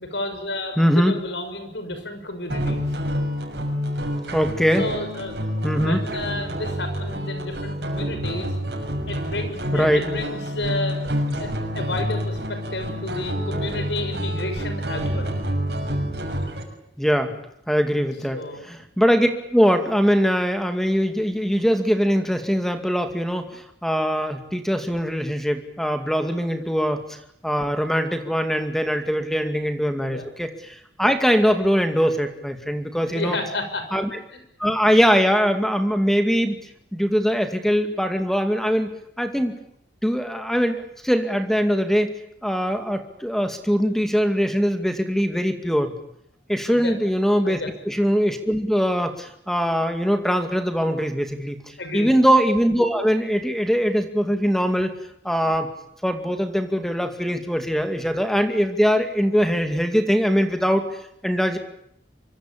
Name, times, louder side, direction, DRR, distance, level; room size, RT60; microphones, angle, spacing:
voice 1, 0.0-3.0 4.8-5.3 5.7-8.5 9.1-11.0 11.4-15.4 17.3-17.4 18.3-18.6 30.1-30.3 33.0-33.9 34.3-34.4 46.7-46.9 47.4-47.7 51.8-52.1, left 2 dB, 80° left, 8 dB, 6.3 m, -31 dB
voice 2, 0.8-1.1 4.3-4.8 5.6-6.0 9.7-10.0 17.0-17.3 17.7-18.4 19.0-27.0 27.4-30.5 31.0-33.4 33.9-34.1 34.6-36.6 36.9-38.9 39.2-39.5 40.0-42.1 42.4-45.9 46.5-47.6 47.9-51.6 51.9-54.9 55.2-55.7 56.0-60.9 61.2-61.6, equal, ahead, 7 dB, 2.3 m, -21 dB
sound 1, 2.5-16.6, equal, 65° right, 6.7 m, -28 dB
25.5 x 23.5 x 8.7 m, 0.74 s
head